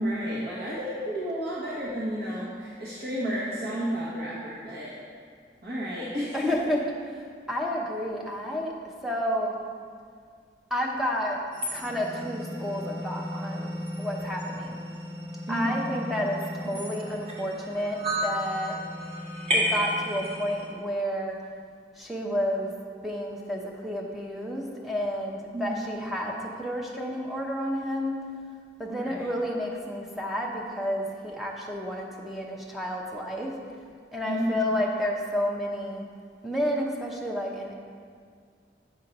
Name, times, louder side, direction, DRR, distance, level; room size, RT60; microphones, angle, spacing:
voice 1, 0.0-4.9 5.6-6.5 15.5-15.8 16.6-16.7 25.5-26.0 28.9-29.3 34.2-34.6, equal, 65° right, -7 dB, 1.1 m, -31 dB
voice 2, 6.3-6.8 7.2-8.7 9.0-9.6 10.7-11.4 11.7-13.7 14.0-14.8 15.5-18.8 19.5-21.4 22.0-22.7 23.0-28.2 28.8-33.6 34.1-36.0 36.4-37.7, equal, ahead, -2 dB, 0.7 m, -30 dB
sound 1, 11.5-20.7, equal, 40° right, 1.4 m, -33 dB
7.7 x 4.4 x 5.3 m, 2.1 s
head